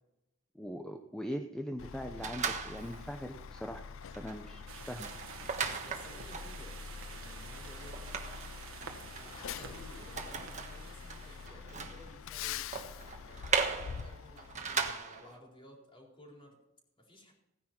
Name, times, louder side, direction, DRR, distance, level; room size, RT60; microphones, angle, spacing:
voice 1, 0.5-3.8 4.2-5.1, equal, 5° left, 4 dB, 0.8 m, -41 dB
Truck, 1.8-14.9, left 7 dB, 65° left, 0.4 m, -45 dB
sound 1, 2.2-3.1 3.6-3.7 4.0-15.4, right 5 dB, 35° right, 1.4 m, -39 dB
sound 2, 4.7-11.5, right 6 dB, 70° right, 1.4 m, -50 dB
voice 2, 5.6-8.0 9.1-12.7 13.2-16.6 17.0-17.3, left 1 dB, 25° left, -1 dB, 4.2 m, -55 dB
17.0 x 10.0 x 4.5 m, 0.92 s
head